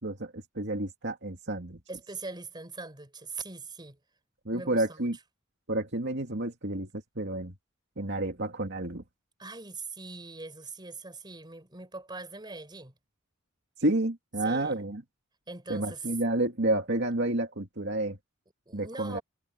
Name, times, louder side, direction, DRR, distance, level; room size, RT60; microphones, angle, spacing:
voice 1, 0.0-1.8 4.5-5.2 5.7-7.5 8.0-9.0 13.8-15.0 15.7-18.2 18.7-19.2, right 1 dB, 60° right, 2.4 m, -30 dB
voice 2, 1.9-4.0 4.5-5.1 9.4-12.9 14.4-14.8 15.5-16.1 18.7-19.2, right 3 dB, 20° right, 4.5 m, -42 dB
head